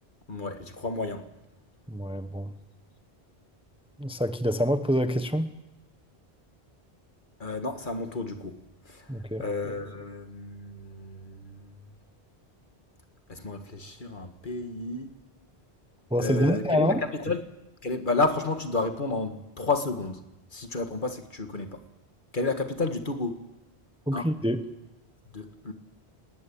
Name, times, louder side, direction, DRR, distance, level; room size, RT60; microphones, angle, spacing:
voice 1, 0.3-1.3 7.4-8.6 8.9-9.1 9.4-11.7 13.3-15.1 16.2-17.4 17.8-20.2 20.5-21.8 22.3-23.4 24.1-24.3 25.3-25.7, left 3 dB, 50° left, 7 dB, 1.8 m, -31 dB
voice 2, 1.9-2.5 4.0-5.5 9.1-9.5 16.1-17.0 24.1-24.6, equal, 5° right, 9 dB, 0.9 m, -26 dB
20.0 x 19.0 x 8.6 m, 0.95 s
omnidirectional pair, 1.1 m